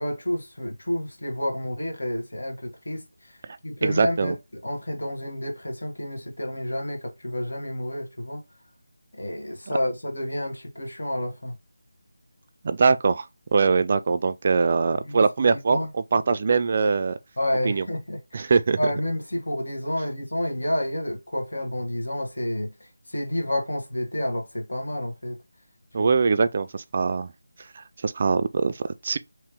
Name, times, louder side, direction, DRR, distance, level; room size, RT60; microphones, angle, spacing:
voice 1, 0.0-3.4 3.6-8.4 9.1-11.6 15.0-15.9 17.4-18.5 18.8-25.4, left 1 dB, 85° left, 1.4 m, -30 dB
voice 2, 3.8-4.3 12.6-13.3 13.5-17.2 17.6-17.9 18.3-18.8 25.9-27.3 27.8-29.2, right 4 dB, 40° right, 0.3 m, -22 dB
2.9 x 2.9 x 3.4 m
figure-of-eight pair, 170°, 0 cm